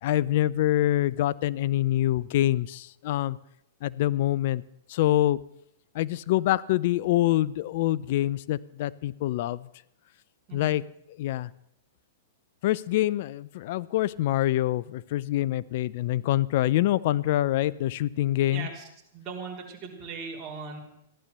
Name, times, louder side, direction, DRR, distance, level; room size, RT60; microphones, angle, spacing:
voice 1, 0.0-3.4 3.8-4.6 4.9-5.4 5.9-9.7 10.5-10.8 11.2-11.5 12.6-18.7, left 14 dB, 55° left, 20 dB, 0.5 m, -25 dB
voice 2, 18.5-18.8 19.1-20.8, right 5 dB, 35° right, -1 dB, 3.7 m, -38 dB
15.0 x 11.5 x 6.8 m, 0.79 s
hypercardioid pair, 115°, 0 cm